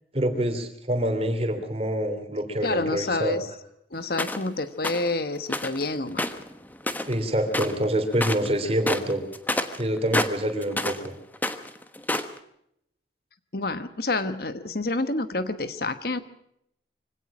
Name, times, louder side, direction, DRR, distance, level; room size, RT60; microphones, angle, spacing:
voice 1, 0.1-3.4 7.1-9.2 9.8-11.1, right 1 dB, 30° right, 7 dB, 3.2 m, -26 dB
voice 2, 2.6-3.5 3.9-6.3 13.5-16.2, left 2 dB, 55° left, 11 dB, 1.3 m, -28 dB
sound 1, 4.2-4.5 4.8-5.1 5.5-5.8 6.1-7.2 7.5-7.8 8.1-8.5 8.8-11.1 11.3-12.4, left 1 dB, 10° left, 1.2 m, -28 dB
24.0 x 17.5 x 6.2 m, 0.74 s
head